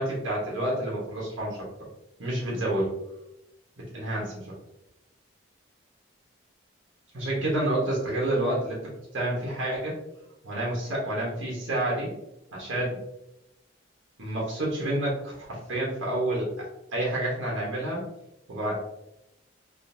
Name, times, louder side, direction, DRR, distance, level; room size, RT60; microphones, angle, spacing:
voice 1, 0.0-1.6 2.2-2.9 3.9-4.5 7.1-8.8 9.1-10.0 10.4-12.1 12.5-13.0 14.2-18.0 18.5-18.7, right 1 dB, 75° right, -4 dB, 1.1 m, -29 dB
3.8 x 2.6 x 2.6 m, 0.88 s
head